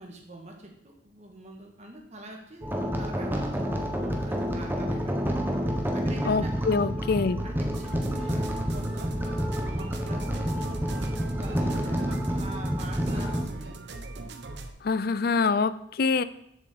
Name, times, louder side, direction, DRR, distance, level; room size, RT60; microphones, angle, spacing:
voice 1, 0.0-5.4 5.9-9.1 9.6-13.8, right 1 dB, 35° right, 1 dB, 1.8 m, -45 dB
sound 1, 2.6-13.4, equal, 10° right, 1.1 m, -29 dB
voice 2, 6.3-7.4 14.8-16.2, left 4 dB, 50° left, 15 dB, 0.5 m, -25 dB
sound 2, 7.7-14.7, right 2 dB, 60° right, 0.9 m, -40 dB
7.5 x 6.1 x 7.8 m, 0.75 s
head